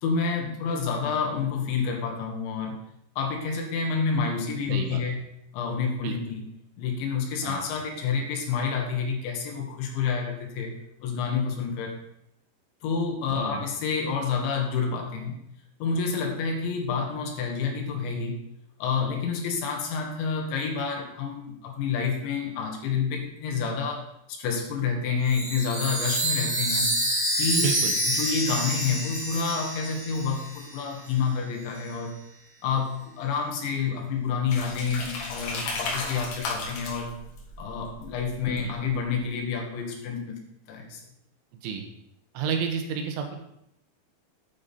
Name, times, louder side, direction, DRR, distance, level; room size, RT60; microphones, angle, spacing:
voice 1, 0.0-2.8 3.2-5.2 5.5-6.5 6.8-10.7 11.0-12.0 12.8-15.4 15.8-18.4 18.8-27.0 27.4-27.7 28.1-32.1 32.6-37.1 37.6-40.4 40.7-41.0, left 5 dB, 75° left, 2 dB, 3.9 m, -28 dB
voice 2, 4.7-5.0 6.0-6.2 7.4-7.7 13.3-13.6 27.6-27.9 38.5-38.8 41.6-41.8 42.4-43.4, right 7 dB, 90° right, 4 dB, 3.8 m, -30 dB
Chime, 25.3-30.8, right 1 dB, 5° right, 2.7 m, -28 dB
sound 1, 34.5-39.1, left 3 dB, 60° left, 3.3 m, -35 dB
9.7 x 8.9 x 4.3 m, 0.77 s
omnidirectional pair, 5.4 m